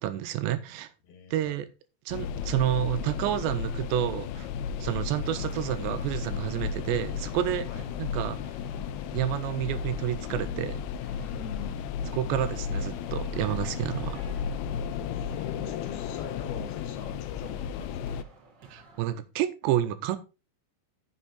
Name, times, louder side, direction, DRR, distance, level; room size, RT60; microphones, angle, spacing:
voice 1, 0.0-0.9 1.3-1.7 2.1-4.5 4.8-7.7 8.0-8.6 9.1-10.8 12.1-14.2 18.7-20.2, right 12 dB, 80° right, 2.9 m, -29 dB
voice 2, 1.0-1.6 7.7-7.9 11.2-11.9 15.1-18.2, left 6 dB, 65° left, 3.3 m, -43 dB
sound 1, 2.1-18.2, left 7 dB, 85° left, 2.3 m, -34 dB
sound 2, 5.2-19.2, right 3 dB, 50° right, 1.3 m, -55 dB
9.9 x 7.2 x 4.0 m
omnidirectional pair, 5.2 m